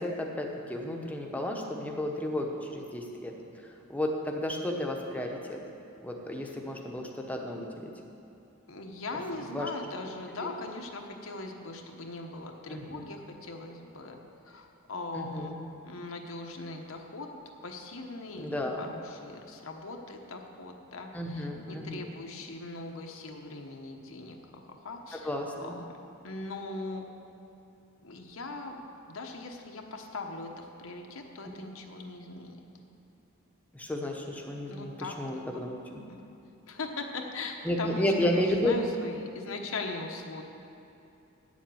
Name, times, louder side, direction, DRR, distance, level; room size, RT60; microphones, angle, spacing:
voice 1, 0.0-3.4 3.9-5.6 6.0-7.9 9.5-9.7 10.4-10.5 12.7-13.0 15.1-15.6 18.4-18.9 21.1-22.1 25.1-25.8 31.4-31.5 33.7-35.8 37.6-38.8, left 1 dB, 10° left, 1 dB, 1.0 m, -32 dB
voice 2, 8.7-14.2 14.4-15.5 15.8-17.3 17.6-25.3 25.6-26.0 26.2-27.1 28.0-32.6 34.7-35.6 36.1-36.2 36.7-40.4, left 3 dB, 85° left, 2 dB, 1.1 m, -40 dB
9.1 x 7.3 x 7.8 m, 2.9 s
head